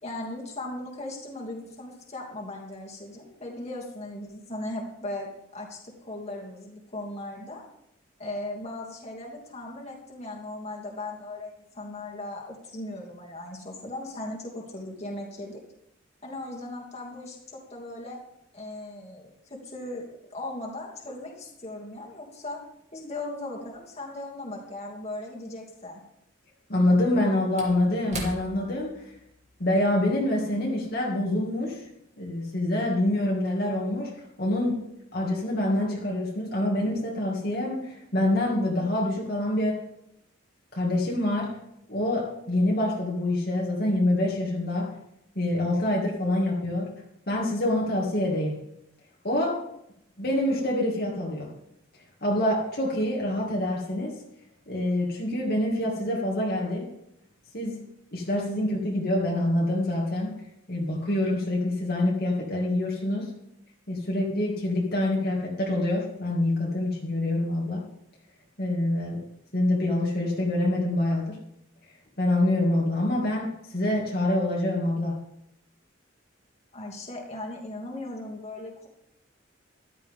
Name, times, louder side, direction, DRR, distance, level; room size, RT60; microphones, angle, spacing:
voice 1, 0.0-7.6 8.2-15.6 16.2-18.2 18.5-20.0 20.3-22.6 22.9-26.0 76.7-78.9, left 2 dB, 30° left, -3 dB, 2.8 m, -38 dB
Slam / Wood, 25.1-25.2 26.7-31.4 31.7-31.9, right 2 dB, 35° right, 2.8 m, -43 dB
voice 2, 26.7-29.0 29.6-31.8 32.2-34.1 34.4-34.8 35.1-39.8 40.7-41.6 41.9-45.0 45.4-47.0 47.3-48.6 49.2-49.6 50.2-51.5 52.2-54.2 54.7-56.9 57.5-57.9 58.1-60.4 60.7-63.3 63.9-67.9 68.6-69.3 69.5-71.4 72.2-75.2, left 1 dB, 50° left, -3 dB, 2.5 m, -26 dB
14.5 x 12.5 x 3.8 m, 0.80 s
head